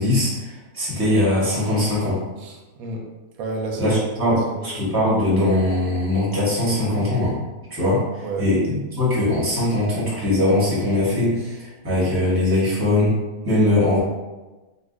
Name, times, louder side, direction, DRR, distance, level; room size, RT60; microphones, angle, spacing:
voice 1, 0.0-2.2 3.8-7.4 7.7-8.6 8.9-13.1 13.4-14.0, left 1 dB, 15° right, -7 dB, 1.0 m, -21 dB
voice 2, 2.4-3.1 3.4-4.0 4.2-4.8 8.2-8.5, right 3 dB, 90° right, 0 dB, 1.1 m, -31 dB
2.6 x 2.4 x 3.6 m, 1.2 s
omnidirectional pair, 1.5 m